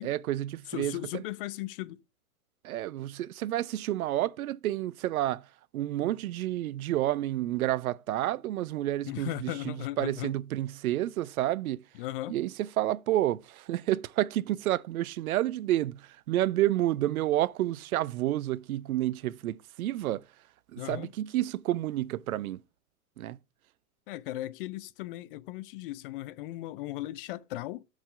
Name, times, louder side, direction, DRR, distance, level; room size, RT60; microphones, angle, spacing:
voice 1, 0.0-1.2 2.6-5.5 5.7-11.8 12.3-12.5 12.8-20.2 20.7-22.6 23.2-23.4, right 14 dB, 70° right, 0.6 m, -30 dB
voice 2, 0.7-2.0 9.1-10.3 12.0-12.4 20.8-21.1 24.1-27.8, left 16 dB, 40° left, 0.4 m, -37 dB
7.3 x 5.0 x 5.5 m
hypercardioid pair, 110°, 44 cm